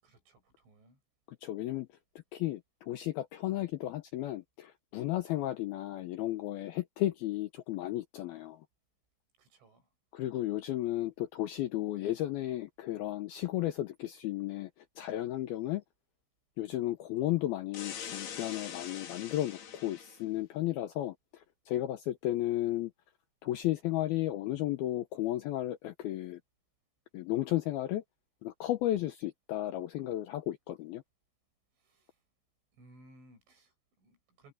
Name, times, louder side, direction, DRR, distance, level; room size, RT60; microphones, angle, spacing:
voice 1, 0.0-1.0 9.4-9.9 31.8-32.1 32.7-34.5, right 1 dB, 85° right, 9.2 m, -61 dB
voice 2, 1.4-1.9 2.3-8.6 10.1-14.7 15.0-15.8 16.6-22.9 23.4-26.4 27.1-28.0 28.4-31.0, left 14 dB, 80° left, 2.2 m, -34 dB
sound 1, 17.7-20.2, left 8 dB, 60° left, 4.5 m, -43 dB
omnidirectional pair, 5.4 m